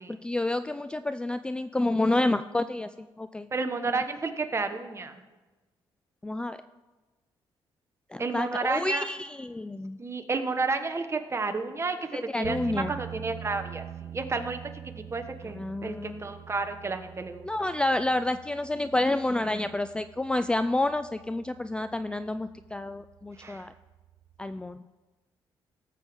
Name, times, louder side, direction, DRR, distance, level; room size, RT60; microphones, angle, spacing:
voice 1, 0.2-3.5 6.2-6.6 8.1-10.0 12.1-12.9 15.5-16.3 17.4-23.7 24.4-24.8, left 2 dB, 10° left, 12 dB, 0.3 m, -29 dB
voice 2, 3.5-5.2 8.2-9.1 10.0-17.7 23.4-23.7, right 3 dB, 30° right, 7 dB, 1.2 m, -31 dB
sound 1, 12.4-24.8, right 11 dB, 85° right, 0.5 m, -45 dB
17.5 x 7.6 x 3.6 m, 1.2 s
cardioid pair, 90°, 9 cm